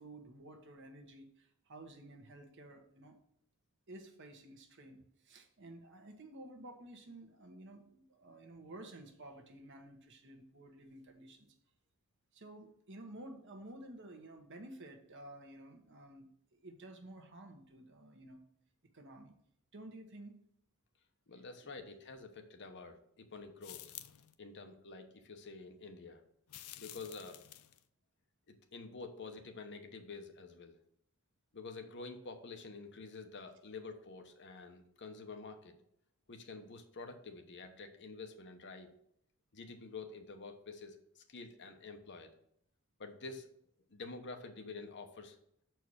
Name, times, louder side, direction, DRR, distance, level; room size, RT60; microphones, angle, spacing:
voice 1, 0.0-3.2 3.9-11.5 12.3-18.4 18.9-19.3 19.7-20.4, right 1 dB, 55° right, 5 dB, 1.2 m, -52 dB
voice 2, 21.3-23.9 24.4-26.2 26.8-27.4 28.5-30.8 31.5-35.8 36.3-38.9 39.5-42.3 43.0-43.5 43.9-45.4, left 3 dB, 55° left, 6 dB, 1.0 m, -48 dB
sound 1, 23.6-24.3 26.5-27.8, left 13 dB, 85° left, 0.5 m, -51 dB
7.0 x 4.6 x 6.2 m, 0.71 s
head